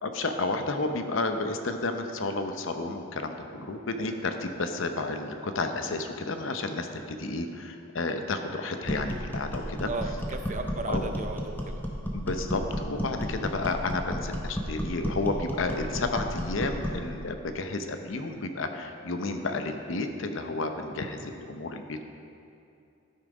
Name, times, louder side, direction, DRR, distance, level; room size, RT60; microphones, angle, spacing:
voice 1, 0.0-9.9 10.9-11.1 12.1-22.0, left 3 dB, 70° left, 6 dB, 0.7 m, -31 dB
sound 1, 8.8-17.1, equal, 10° left, 0.9 m, -33 dB
voice 2, 9.8-11.8, right 3 dB, 35° right, 6 dB, 0.5 m, -35 dB
12.5 x 5.7 x 4.9 m, 2.6 s
head